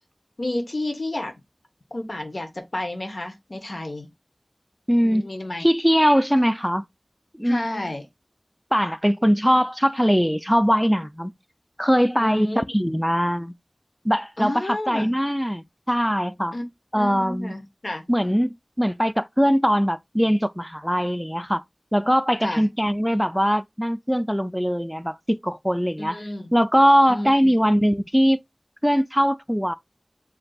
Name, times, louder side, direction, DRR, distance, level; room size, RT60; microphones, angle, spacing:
voice 1, 0.4-1.3 1.9-4.1 5.0-5.7 7.4-8.0 12.2-12.9 14.4-15.1 16.5-16.6 17.0-18.0 22.4-22.6 26.0-26.5 27.1-27.5, left 1 dB, 85° left, 0.8 m, -31 dB
voice 2, 4.9-5.3 5.6-6.8 7.4-7.6 8.7-11.3 11.8-13.6 14.0-16.5 16.9-17.6 18.1-21.6 21.9-26.2 26.5-28.4 28.8-29.7, equal, ahead, 0.3 m, -21 dB
7.6 x 2.6 x 2.3 m
wide cardioid pair, 45°, 0 cm